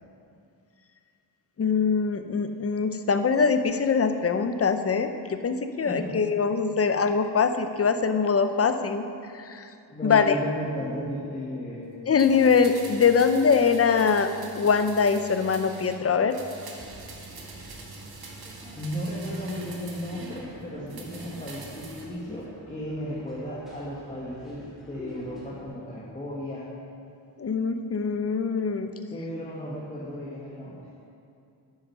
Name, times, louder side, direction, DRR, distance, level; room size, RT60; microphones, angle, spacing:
voice 1, 1.6-9.0 9.3-9.7 10.0-10.4 12.1-14.3 14.6-16.4 27.4-28.9, left 5 dB, 35° left, 8 dB, 0.6 m, -23 dB
voice 2, 5.9-6.2 9.9-11.8 18.7-26.7 29.1-30.8, equal, 15° left, -6 dB, 1.6 m, -35 dB
sound 1, 12.2-16.0 16.3-20.5 20.9-22.1 22.4-22.5, right 3 dB, 60° right, 1.7 m, -44 dB
sound 2, 16.8-25.7, equal, ahead, 3.1 m, -47 dB
10.5 x 8.9 x 5.5 m, 2.5 s
wide cardioid pair, 115°, 42 cm